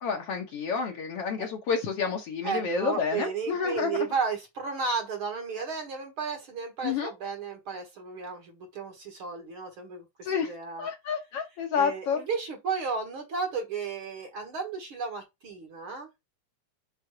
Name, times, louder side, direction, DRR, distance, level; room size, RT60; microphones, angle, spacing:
voice 1, 0.0-3.9 6.8-7.1 10.2-10.5 10.8-12.2, left 6 dB, 60° left, 1.9 m, -29 dB
voice 2, 2.4-10.9 11.8-16.1, right 5 dB, 50° right, 2.0 m, -33 dB
6.7 x 3.4 x 4.8 m
omnidirectional pair, 3.4 m